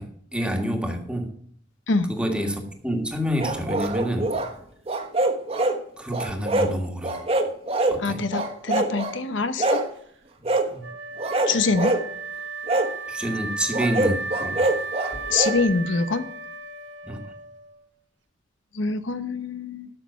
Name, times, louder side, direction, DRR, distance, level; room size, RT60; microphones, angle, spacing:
voice 1, 0.0-1.3 2.1-4.3 6.0-7.3 7.9-8.2 10.7-10.9 13.1-14.7 17.0-17.3, equal, 5° right, 3 dB, 1.6 m, -28 dB
sound 1, 3.4-4.5 4.9-5.8 6.1-6.7 7.0-8.0 8.3-9.1 9.6-9.9 10.4-10.7 11.2-12.0 12.7-12.9 13.7-15.6, right 2 dB, 30° right, 1.3 m, -24 dB
voice 2, 8.0-9.8 11.5-12.0 15.3-16.3 18.7-19.9, left 3 dB, 80° left, 10 dB, 0.9 m, -25 dB
Wind instrument woodwind instrument, 10.8-17.8, right 4 dB, 65° right, 1.4 m, -34 dB
12.5 x 6.3 x 5.7 m, 0.63 s
head